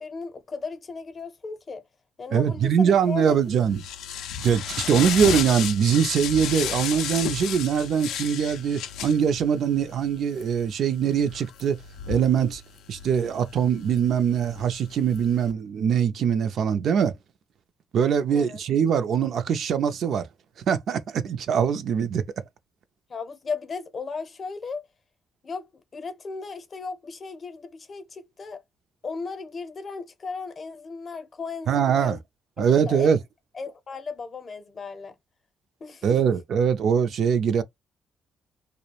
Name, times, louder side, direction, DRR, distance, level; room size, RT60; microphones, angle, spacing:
voice 1, 0.0-1.8 2.2-3.4 18.3-18.6 23.1-24.8 25.4-28.6 29.0-32.2 32.6-33.1 33.5-35.1 35.8-36.0, left 4 dB, 40° left, 0.6 m, -36 dB
voice 2, 2.3-3.8 4.4-11.8 12.1-12.6 12.9-17.1 17.9-20.3 20.7-22.2 31.7-32.2 32.6-33.2 36.0-37.6, right 7 dB, 65° right, 0.3 m, -22 dB
sound 1, 3.1-15.5, left 8 dB, 85° left, 0.3 m, -34 dB
2.3 x 2.0 x 2.8 m
cardioid pair, 90°, 0 cm